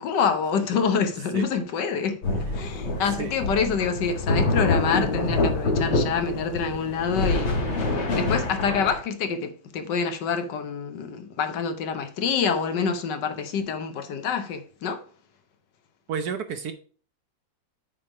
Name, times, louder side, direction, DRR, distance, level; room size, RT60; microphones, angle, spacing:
voice 1, 0.0-2.2 2.5-7.6 8.1-15.1, left 6 dB, 70° left, 1.4 m, -26 dB
sound 1, 2.2-8.9, left 2 dB, 90° left, 2.7 m, -26 dB
voice 2, 16.1-16.7, right 6 dB, 65° right, 1.1 m, -30 dB
8.7 x 3.4 x 5.9 m
omnidirectional pair, 2.1 m